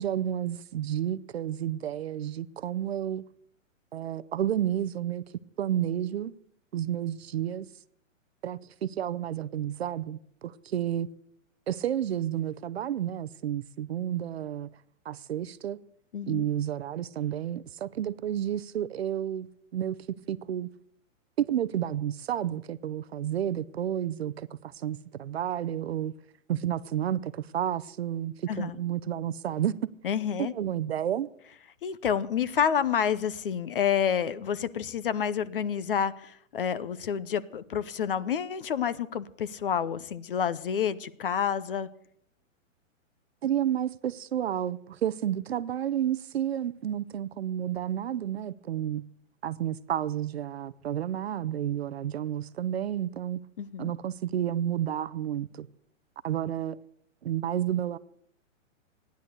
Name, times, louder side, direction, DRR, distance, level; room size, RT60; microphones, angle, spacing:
voice 1, 0.0-3.2 3.9-5.2 5.6-6.3 6.7-7.7 8.4-11.1 11.7-14.7 15.1-15.8 16.2-20.0 20.3-20.7 21.4-26.1 26.5-29.9 30.4-31.3 43.4-49.0 49.4-53.4 53.8-55.7 56.2-56.8 57.2-58.0, right 10 dB, 50° right, 0.6 m, -31 dB
voice 2, 16.1-16.4 28.5-28.8 30.0-30.5 31.8-41.9 53.6-53.9, left 8 dB, 45° left, 0.7 m, -29 dB
15.5 x 10.5 x 8.0 m
hypercardioid pair, 180°, 40 cm